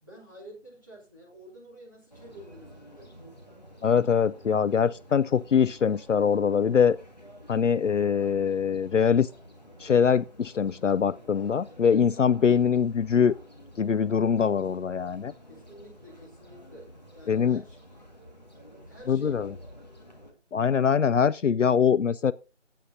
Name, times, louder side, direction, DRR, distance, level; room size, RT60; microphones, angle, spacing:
voice 1, 0.0-3.2 15.5-17.8 18.9-19.5, equal, 15° left, 2.2 m, -49 dB
sound 1, 2.1-20.3, equal, 35° left, 1.9 m, -50 dB
voice 2, 3.8-7.0 7.5-9.3 9.8-13.3 13.8-15.3 17.3-17.6 19.1-19.5 20.5-22.3, left 7 dB, 75° left, 0.5 m, -23 dB
16.0 x 8.4 x 2.6 m
figure-of-eight pair, 175°, 38 cm